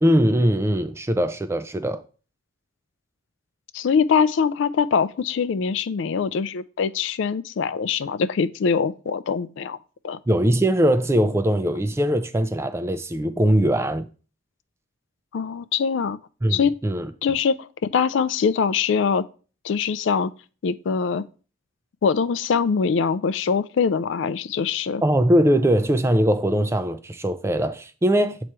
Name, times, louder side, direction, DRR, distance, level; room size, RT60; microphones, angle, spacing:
voice 1, 0.0-2.0 10.3-14.1 16.4-17.1 25.0-28.4, equal, 15° right, 0.3 m, -21 dB
voice 2, 3.7-9.8 10.0-10.2 15.3-16.2 16.5-16.7 17.2-19.2 19.6-20.3 20.6-21.2 22.0-25.0, left 6 dB, 65° left, 0.3 m, -23 dB
7.3 x 3.0 x 4.5 m
head